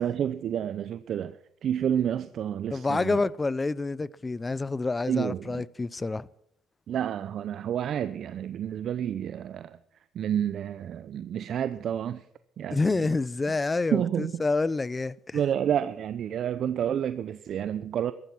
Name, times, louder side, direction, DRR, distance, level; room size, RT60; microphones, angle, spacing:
voice 1, 0.0-3.2 5.1-5.6 6.9-9.8 10.1-12.3 12.6-13.1 13.9-14.4 15.3-18.1, right 9 dB, 55° right, 0.6 m, -29 dB
voice 2, 2.7-6.3 12.7-15.4, left 3 dB, 20° left, 0.5 m, -28 dB
15.0 x 12.5 x 6.0 m
cardioid pair, 105°, 0 cm